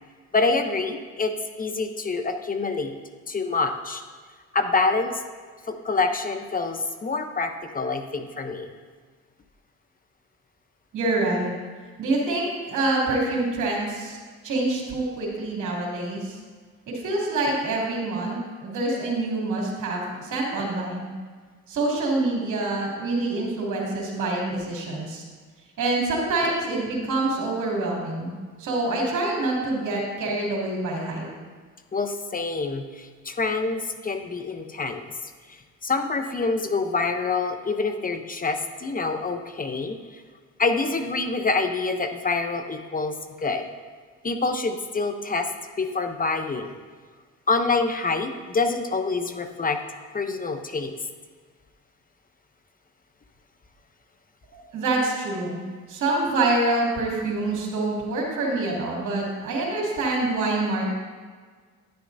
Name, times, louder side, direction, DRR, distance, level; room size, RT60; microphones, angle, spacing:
voice 1, 0.3-2.9 3.3-4.0 4.5-5.2 5.7-8.7 31.9-40.2 40.6-43.7 44.2-45.5 45.8-46.7 47.5-49.8 50.1-51.0, left 3 dB, 30° left, 6 dB, 0.8 m, -26 dB
voice 2, 10.9-11.5 12.0-14.2 14.4-16.3 16.9-21.1 21.7-25.2 25.8-28.3 28.6-31.3 54.5-55.6 55.9-60.9, right 2 dB, 75° right, -2 dB, 2.8 m, -26 dB
10.5 x 10.5 x 2.7 m, 1.5 s
cardioid pair, 90°, 30 cm